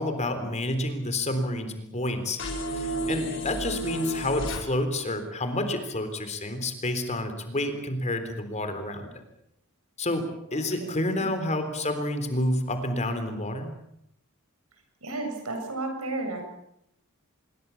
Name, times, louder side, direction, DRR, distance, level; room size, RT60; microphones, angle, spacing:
voice 1, 0.0-9.1 10.0-10.2 10.5-13.7, left 1 dB, 30° left, 8 dB, 3.7 m, -29 dB
sound 1, 2.4-4.6, equal, 60° left, 5.5 m, -31 dB
voice 2, 10.5-11.3 15.0-16.4, right 2 dB, 85° right, 4 dB, 7.5 m, -34 dB
26.5 x 22.0 x 7.2 m, 0.79 s
head